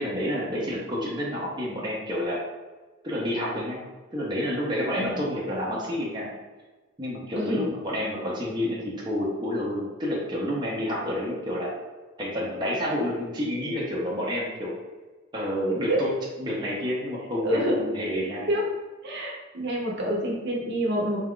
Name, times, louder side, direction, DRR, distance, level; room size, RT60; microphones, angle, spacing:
voice 1, 0.0-2.4 3.0-3.8 4.1-6.3 7.0-8.8 9.0-11.7 12.2-14.8 15.3-16.1 16.4-18.5, left 1 dB, 20° right, -5 dB, 0.7 m, -29 dB
voice 2, 7.3-7.7 15.7-16.0 17.4-17.8 18.5-18.7 19.0-21.2, equal, 55° right, -2 dB, 0.9 m, -27 dB
4.2 x 2.3 x 3.7 m, 1.3 s
head